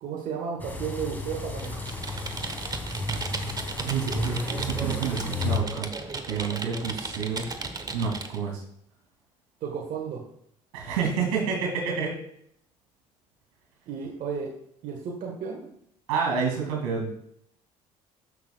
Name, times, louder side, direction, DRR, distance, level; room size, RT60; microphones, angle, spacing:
voice 1, 0.0-1.8 9.6-10.3 13.9-14.6 14.8-15.7, right 6 dB, 60° right, 0 dB, 1.4 m, -33 dB
sound 1, 0.6-5.6, left 2 dB, 10° left, 1.9 m, -33 dB
Computer keyboard, 1.5-8.4, right 3 dB, 25° right, 1.1 m, -35 dB
voice 2, 3.8-5.9 6.3-7.4 7.9-8.6 10.7-12.2 16.1-17.1, right 6 dB, 90° right, 1 dB, 2.5 m, -29 dB
14.5 x 6.1 x 2.4 m, 0.71 s
supercardioid pair, 70°, 15 cm